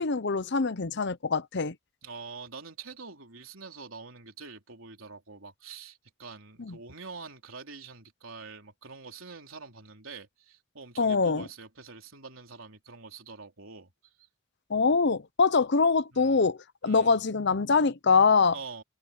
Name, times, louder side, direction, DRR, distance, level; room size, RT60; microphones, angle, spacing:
voice 1, 0.0-1.7 6.6-6.7 11.0-11.4 14.7-16.6 16.8-18.5, left 4 dB, 55° left, 0.8 m, -24 dB
voice 2, 2.0-14.3 16.1-16.5 16.8-17.2 18.5-18.8, right 4 dB, 80° right, 3.8 m, -45 dB
head